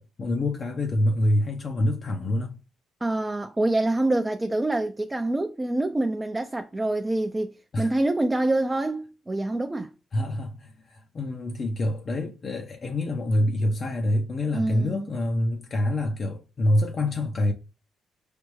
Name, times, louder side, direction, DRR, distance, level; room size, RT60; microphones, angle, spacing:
voice 1, 0.0-2.5 7.7-7.9 10.1-17.5, left 1 dB, 45° left, 0.6 m, -26 dB
voice 2, 3.0-9.9 14.5-15.1, right 2 dB, 15° right, 0.4 m, -26 dB
5.1 x 3.3 x 3.1 m
cardioid pair, 90°, 0 cm